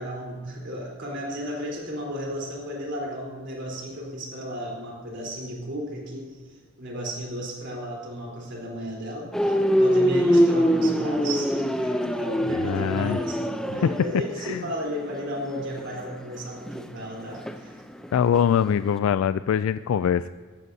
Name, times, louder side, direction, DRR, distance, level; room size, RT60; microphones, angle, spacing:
voice 1, 0.0-17.8, equal, 55° right, -2 dB, 3.8 m, -34 dB
sound 1, 9.3-18.4 18.7-19.0, equal, 5° left, 0.5 m, -24 dB
voice 2, 12.6-13.2 14.4-14.6 18.1-20.3, left 8 dB, 80° left, 13 dB, 0.3 m, -23 dB
16.0 x 14.5 x 2.8 m, 1.5 s
head